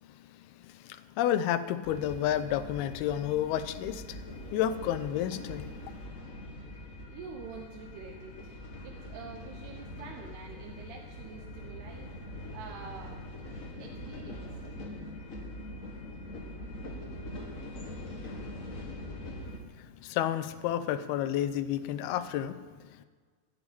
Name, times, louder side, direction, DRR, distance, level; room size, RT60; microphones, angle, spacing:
voice 1, 0.0-5.9 19.5-23.1, left 11 dB, 85° left, 12 dB, 2.6 m, -31 dB
sound 1, 1.8-19.6, left 1 dB, 65° left, 0.8 m, -43 dB
voice 2, 7.1-12.1 12.5-13.3 13.8-14.5, right 5 dB, 85° right, 0 dB, 3.2 m, -46 dB
15.0 x 8.8 x 8.6 m, 1.5 s
omnidirectional pair, 4.5 m